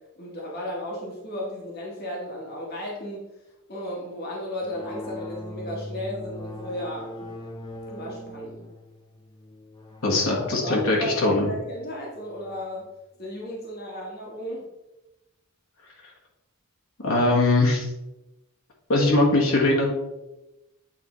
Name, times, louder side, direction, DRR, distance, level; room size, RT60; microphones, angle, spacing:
voice 1, 0.2-3.3 3.7-7.3 7.9-8.7 10.1-12.9 13.2-14.7, equal, 50° left, -2 dB, 1.2 m, -34 dB
sound 1, 4.6-12.7, left 1 dB, 20° left, 0.5 m, -41 dB
voice 2, 10.0-11.5 17.0-17.9 18.9-19.9, left 2 dB, 80° left, -2 dB, 1.5 m, -21 dB
8.4 x 4.2 x 3.1 m, 0.96 s
head